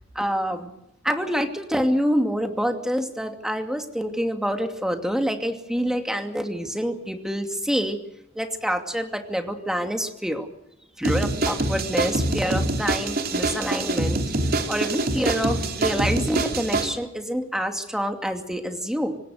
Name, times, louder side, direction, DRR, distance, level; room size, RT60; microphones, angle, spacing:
voice 1, 0.1-0.7 1.0-8.0 8.4-10.5 11.0-14.2 14.7-19.2, equal, 5° right, 5 dB, 2.5 m, -26 dB
sound 1, 11.0-16.9, right 2 dB, 50° right, 3.2 m, -25 dB
26.0 x 19.0 x 6.6 m, 0.83 s
head